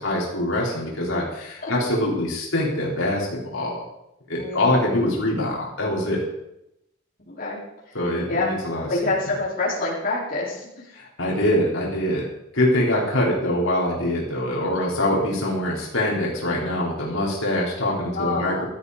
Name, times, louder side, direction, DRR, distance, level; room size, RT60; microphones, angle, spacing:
voice 1, 0.0-3.8 4.3-6.3 7.9-8.9 10.9-12.2 12.5-18.7, left 1 dB, 90° left, -4 dB, 4.3 m, -24 dB
voice 2, 4.4-4.8 7.2-7.6 7.9-8.0 8.3-8.5 8.9-10.9 18.1-18.7, left 2 dB, 45° left, -5 dB, 4.6 m, -26 dB
16.5 x 13.0 x 4.2 m, 0.83 s
head